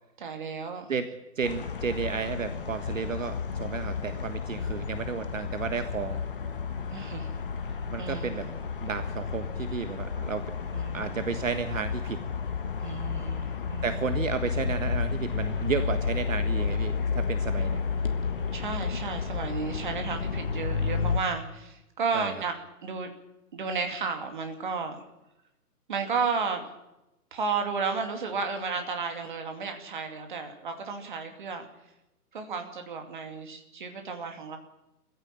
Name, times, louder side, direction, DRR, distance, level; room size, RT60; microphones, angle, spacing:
voice 1, 0.2-0.9 6.9-7.3 8.0-8.6 10.7-11.2 12.8-14.1 18.5-22.5 22.8-23.1 23.5-25.0 25.9-26.7 27.3-31.7 32.3-34.6, right 5 dB, 30° right, 5 dB, 2.5 m, -33 dB
voice 2, 1.3-6.2 7.9-8.5 8.8-10.5 10.9-12.2 13.8-17.8 22.1-22.3, right 6 dB, 55° right, 9 dB, 1.5 m, -32 dB
sound 1, 1.4-21.2, left 5 dB, 35° left, 1.5 m, -31 dB
23.0 x 15.5 x 8.9 m, 0.96 s
hypercardioid pair, 175°, 46 cm